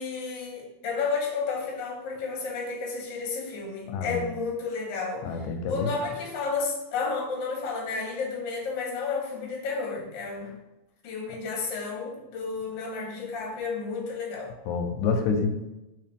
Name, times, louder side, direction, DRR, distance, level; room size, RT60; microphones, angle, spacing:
voice 1, 0.0-5.2 5.7-10.5 11.0-14.5, left 4 dB, 65° left, -1 dB, 1.1 m, -32 dB
voice 2, 3.9-4.2 5.2-5.9 9.3-9.5 14.7-15.5, left 5 dB, 85° left, 5 dB, 2.0 m, -28 dB
4.9 x 2.8 x 3.4 m, 0.95 s
omnidirectional pair, 3.3 m